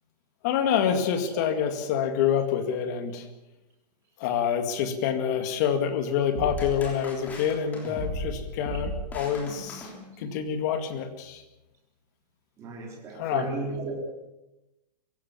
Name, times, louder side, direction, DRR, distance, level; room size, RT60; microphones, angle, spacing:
voice 1, 0.4-3.3 4.2-9.9 10.2-11.4 13.1-13.5, left 8 dB, 25° left, 7 dB, 2.1 m, -27 dB
sound 1, 6.3-10.5, left 1 dB, 5° left, 3.4 m, -36 dB
voice 2, 12.6-14.1, right 3 dB, 15° right, 0 dB, 3.8 m, -34 dB
24.0 x 17.0 x 7.4 m, 0.96 s
hypercardioid pair, 175°, 21 cm